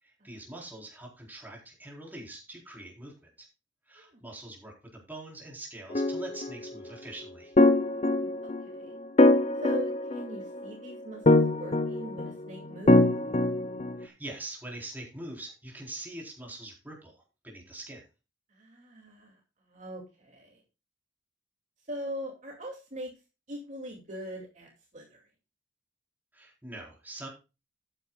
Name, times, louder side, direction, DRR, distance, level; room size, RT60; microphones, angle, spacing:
voice 1, 0.0-3.1 3.4-3.5 3.9-7.6 14.0-18.0 26.3-27.3, right 2 dB, 10° right, -1 dB, 4.0 m, -43 dB
sound 1, 5.9-6.5 7.6-8.6 9.2-10.6 11.3-12.3 12.9-14.0, left 2 dB, 35° left, 0.8 m, -23 dB
voice 2, 8.0-9.0 9.6-13.0 18.5-19.4 19.7-20.6 21.9-23.1 23.5-25.3, right 1 dB, 40° right, 0 dB, 2.5 m, -41 dB
13.5 x 9.7 x 2.3 m, 0.29 s
head